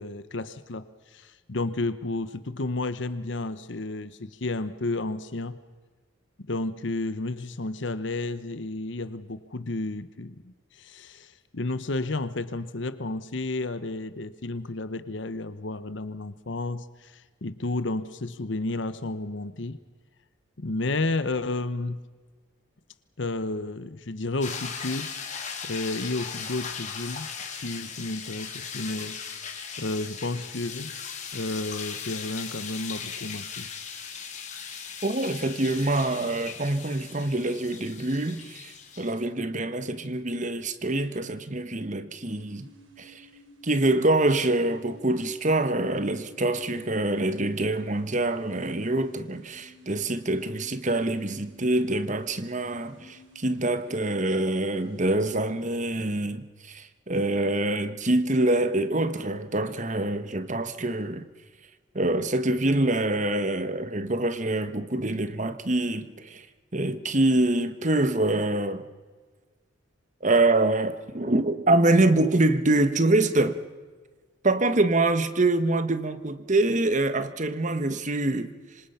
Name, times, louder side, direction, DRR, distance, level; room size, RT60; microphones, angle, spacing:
voice 1, 0.0-5.6 6.5-19.8 20.6-22.0 23.2-25.2 25.6-27.3 27.6-29.2 29.8-31.0 31.3-33.7, left 2 dB, 65° left, 1.0 m, -32 dB
sound 1, 24.4-39.1, left 6 dB, 40° left, 3.2 m, -38 dB
voice 2, 35.0-42.7 43.0-43.2 43.6-61.3 61.9-66.4 66.7-68.8 70.2-73.6 74.4-78.5, right 2 dB, 40° right, 1.4 m, -25 dB
sound 2, 42.2-55.2, right 2 dB, 75° right, 4.6 m, -52 dB
26.0 x 26.0 x 5.8 m
head